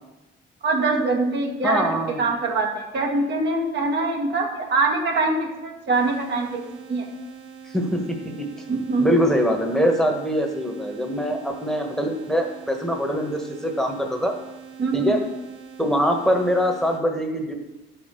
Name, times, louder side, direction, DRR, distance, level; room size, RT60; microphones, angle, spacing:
voice 1, 0.6-1.9 2.2-6.6 6.9-7.1 8.7-9.1 14.8-15.1, right 3 dB, 60° right, 0 dB, 2.2 m, -23 dB
voice 2, 1.6-2.4 7.7-8.5 9.0-14.3 14.9-15.2 15.8-17.5, equal, ahead, 2 dB, 1.5 m, -23 dB
sound 1, 5.9-17.0, right 7 dB, 85° right, 1.8 m, -43 dB
11.0 x 5.6 x 6.8 m, 0.99 s
cardioid pair, 110°, 20 cm